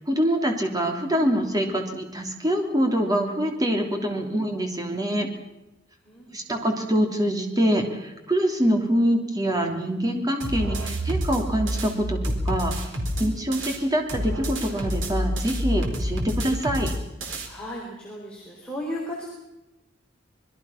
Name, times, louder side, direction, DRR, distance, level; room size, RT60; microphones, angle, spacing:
voice 1, 0.1-5.3 6.3-12.9 13.2-16.9, equal, 20° right, 3 dB, 3.1 m, -25 dB
voice 2, 6.0-6.4 17.4-19.3, left 1 dB, 5° left, -4 dB, 4.2 m, -35 dB
sound 1, 10.4-13.8 14.1-17.5, equal, 65° right, 4.2 m, -28 dB
26.0 x 21.5 x 5.9 m, 0.96 s
head